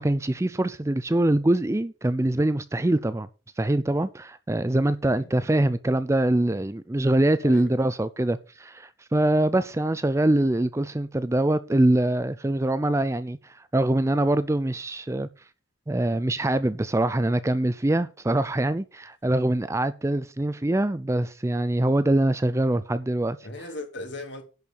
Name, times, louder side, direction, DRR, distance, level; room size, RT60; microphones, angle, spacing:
voice 1, 0.0-3.3 3.6-15.3 15.9-23.4, right 1 dB, 15° right, 0.4 m, -24 dB
voice 2, 5.0-5.4 7.4-7.8 23.4-24.4, left 2 dB, 60° left, 2.4 m, -38 dB
10.5 x 4.8 x 6.8 m
head